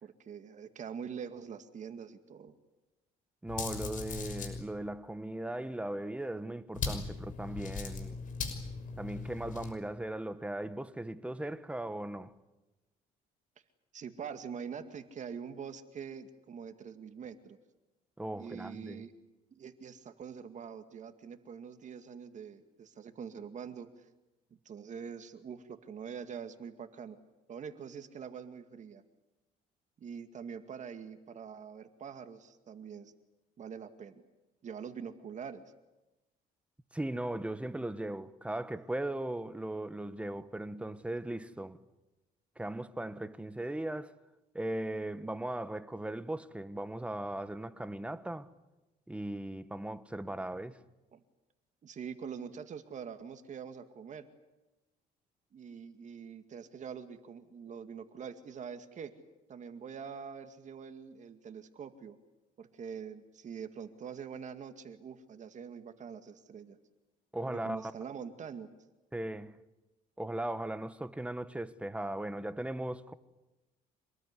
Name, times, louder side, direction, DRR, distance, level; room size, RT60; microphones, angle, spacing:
voice 1, 0.0-2.5 13.9-17.6 18.4-19.1 19.5-23.9 24.7-27.2 27.5-29.0 30.0-33.1 33.6-34.2 34.6-35.6 51.1-51.2 51.8-54.3 55.5-59.1 59.5-62.2 62.6-66.8 67.4-68.7, right 7 dB, 45° right, 2.1 m, -44 dB
voice 2, 3.4-8.2 9.0-12.3 18.2-19.0 36.9-41.8 42.6-44.2 44.5-48.5 49.1-50.8 67.3-67.9 69.1-69.6 70.2-73.1, right 1 dB, 5° right, 1.2 m, -38 dB
sound 1, 3.5-4.6 6.7-9.7, left 4 dB, 50° left, 6.0 m, -38 dB
26.5 x 19.5 x 9.8 m
cardioid pair, 110°, 17 cm